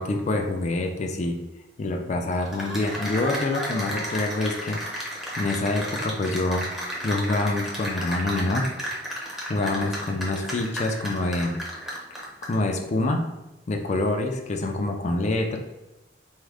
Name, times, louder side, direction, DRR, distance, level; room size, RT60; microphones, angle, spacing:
voice 1, 0.0-1.4 1.8-6.7 7.0-8.9 9.5-11.6 12.5-13.2 13.7-15.6, left 2 dB, 40° left, 3 dB, 0.4 m, -26 dB
Cheering / Applause, 2.3-12.7, equal, ahead, 0.7 m, -33 dB
3.6 x 2.1 x 3.3 m, 1.0 s
head